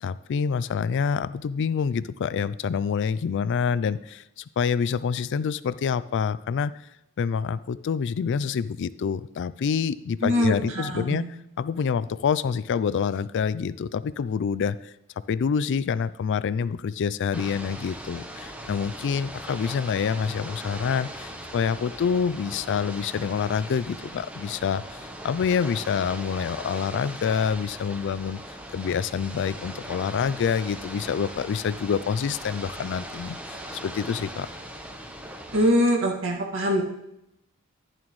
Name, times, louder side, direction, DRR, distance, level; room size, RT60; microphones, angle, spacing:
voice 1, 0.0-6.7 7.2-11.2 11.6-14.9 15.3-28.4 28.7-34.5, left 6 dB, 55° left, 17 dB, 0.3 m, -27 dB
voice 2, 10.2-11.3 35.5-36.8, equal, 65° right, 0 dB, 2.0 m, -23 dB
Ocean / Boat Water vehicle, 17.3-35.7, right 1 dB, 5° right, 0.9 m, -39 dB
11.0 x 10.5 x 3.1 m, 0.85 s
head